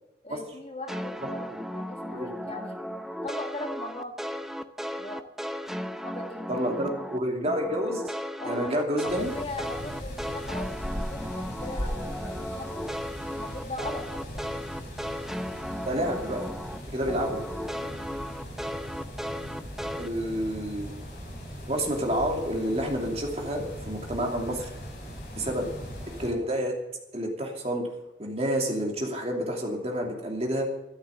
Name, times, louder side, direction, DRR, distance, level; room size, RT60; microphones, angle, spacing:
voice 1, 0.2-2.8 3.2-4.1 5.0-5.3 6.0-6.9 8.4-10.7 11.1-12.9 13.3-14.5 16.8-17.3 17.8-18.1 20.2-20.4 25.3-25.6, left 1 dB, 30° left, 4 dB, 1.7 m, -40 dB
sound 1, 0.9-7.2 7.5-16.8 17.1-20.1, equal, ahead, 0.6 m, -35 dB
voice 2, 6.5-8.1 8.4-9.3 15.9-16.4 16.9-17.4 20.0-20.9 21.7-24.7 25.4-25.7 26.2-26.7 27.1-27.8 28.2-30.6, equal, 35° right, 1 dB, 2.8 m, -29 dB
sound 2, 9.0-26.3, equal, 55° left, 5.9 m, -39 dB
13.0 x 12.5 x 7.1 m, 0.95 s
head